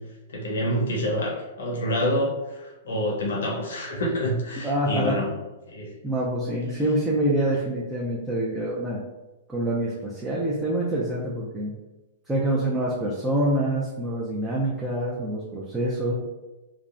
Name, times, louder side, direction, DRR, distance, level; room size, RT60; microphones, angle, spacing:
voice 1, 0.3-5.3 5.7-5.9, equal, 85° left, -3 dB, 0.8 m, -27 dB
voice 2, 4.6-5.2 6.0-9.0 9.5-11.7 12.3-16.1, right 1 dB, 10° right, -5 dB, 0.4 m, -26 dB
3.3 x 2.1 x 2.5 m, 1.1 s
hypercardioid pair, 150°, 0 cm